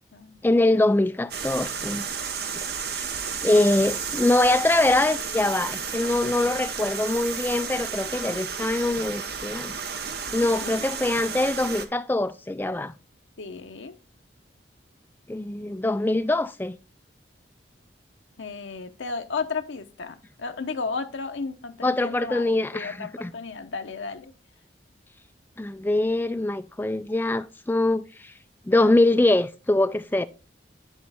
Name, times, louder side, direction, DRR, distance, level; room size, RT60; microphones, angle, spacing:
voice 1, 0.4-2.1 2.9-3.1 3.4-9.7 10.3-12.9 15.3-16.8 21.8-23.3 25.6-28.3 28.7-30.3, left 2 dB, 10° left, 0.3 m, -23 dB
sound 1, 1.3-11.8, right 6 dB, 55° right, 0.8 m, -32 dB
voice 2, 10.4-10.7 13.4-13.9 18.4-24.3, left 4 dB, 85° left, 0.7 m, -34 dB
10.0 x 4.1 x 3.4 m
head